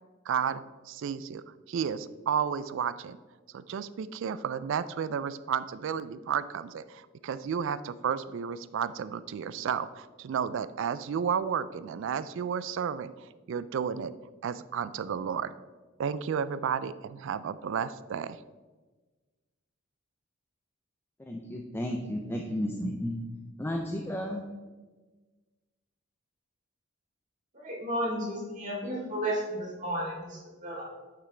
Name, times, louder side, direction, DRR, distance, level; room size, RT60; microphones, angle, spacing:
voice 1, 0.3-3.2 3.5-13.1 13.5-14.1 14.4-15.5 16.0-18.4, right 7 dB, 65° right, 15 dB, 0.3 m, -32 dB
voice 2, 21.2-23.2 23.6-24.4, left 1 dB, 10° left, 2 dB, 0.5 m, -33 dB
voice 3, 27.5-30.8, right 1 dB, 40° right, -4 dB, 2.7 m, -33 dB
9.4 x 6.0 x 3.3 m, 1.3 s
head